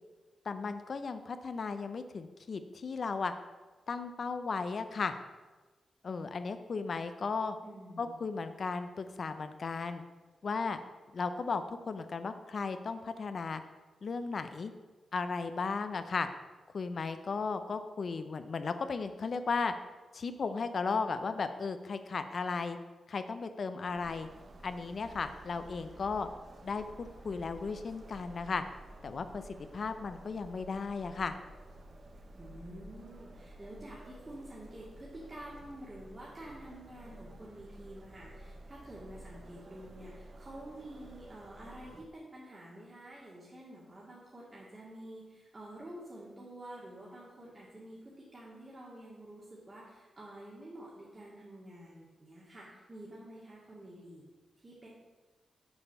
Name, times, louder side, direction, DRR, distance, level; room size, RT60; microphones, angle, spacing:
voice 1, 0.5-3.3 3.9-5.1 6.0-7.6 8.0-10.0 10.4-10.8 11.1-13.6 14.0-14.7 15.1-16.3 16.7-19.7 20.1-22.8 23.1-24.3 24.6-26.3 26.6-28.6 29.0-29.4 29.7-31.3, left 4 dB, 60° left, 9 dB, 0.6 m, -35 dB
voice 2, 7.6-8.2 32.3-54.3 54.6-54.9, right 1 dB, 30° right, -6 dB, 2.0 m, -49 dB
sound 1, 23.8-42.1, right 1 dB, 50° right, 0.9 m, -52 dB
7.0 x 6.6 x 5.5 m, 1.3 s
cardioid pair, 70°, 0 cm